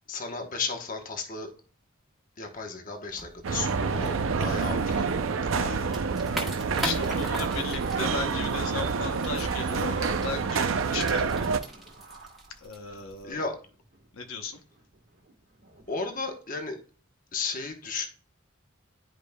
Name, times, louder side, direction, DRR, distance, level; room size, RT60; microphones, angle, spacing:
voice 1, 0.1-1.5 2.4-4.1 4.4-5.0 13.2-13.6 15.9-16.8 17.3-18.1, left 4 dB, 40° left, 1.0 m, -34 dB
sound 1, 3.1-13.3, right 1 dB, ahead, 1.5 m, -41 dB
sound 2, 3.4-11.6, right 5 dB, 75° right, 0.5 m, -28 dB
sound 3, 3.7-13.2 13.6-16.3, right 3 dB, 60° right, 1.4 m, -48 dB
voice 2, 4.4-4.7 5.5-5.9 6.8-11.6 12.6-13.4 14.1-14.6, left 4 dB, 85° left, 0.9 m, -36 dB
10.5 x 5.0 x 2.2 m
head